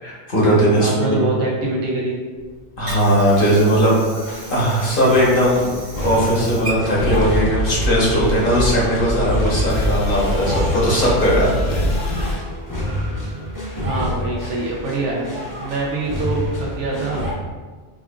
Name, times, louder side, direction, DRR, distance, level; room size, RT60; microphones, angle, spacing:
voice 1, 0.0-1.3 2.8-3.9 4.5-5.7 6.0-11.8 12.1-12.4, equal, 50° left, -6 dB, 1.1 m, -18 dB
voice 2, 0.8-2.1 13.8-15.3 15.6-17.3, right 2 dB, 85° right, -4 dB, 0.9 m, -24 dB
Water / Sink (filling or washing), 2.4-8.4, right 2 dB, 65° right, 1.6 m, -36 dB
sound 1, 4.1-17.3, equal, 20° left, 0.6 m, -29 dB
sound 2, 7.0-12.3, left 1 dB, 75° left, 1.0 m, -24 dB
4.8 x 2.4 x 2.3 m, 1.4 s
omnidirectional pair, 1.2 m